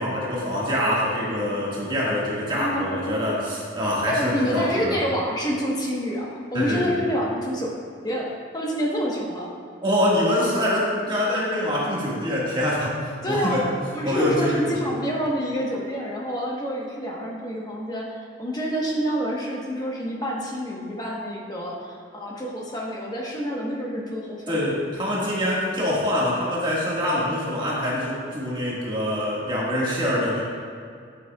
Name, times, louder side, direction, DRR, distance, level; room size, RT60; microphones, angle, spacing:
voice 1, 0.0-5.0 6.5-7.0 9.8-13.6 14.0-14.8 24.5-30.4, left 1 dB, 25° right, -6 dB, 1.7 m, -25 dB
voice 2, 2.6-3.0 4.1-7.7 8.0-8.3 8.5-9.5 13.2-13.6 13.9-24.7, equal, 20° left, -3 dB, 1.1 m, -27 dB
9.4 x 8.3 x 2.4 m, 2.3 s
head